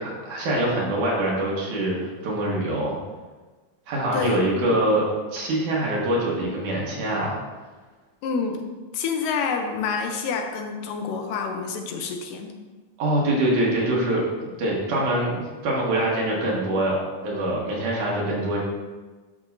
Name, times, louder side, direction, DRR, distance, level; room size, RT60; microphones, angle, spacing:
voice 1, 0.0-2.9 3.9-5.1 5.3-7.3 13.0-14.2 14.6-17.0 17.2-18.6, right 1 dB, 70° right, -4 dB, 2.9 m, -24 dB
voice 2, 8.2-8.6 8.9-12.5, left 5 dB, 85° left, 4 dB, 2.4 m, -27 dB
9.3 x 6.1 x 2.7 m, 1.3 s
omnidirectional pair, 3.8 m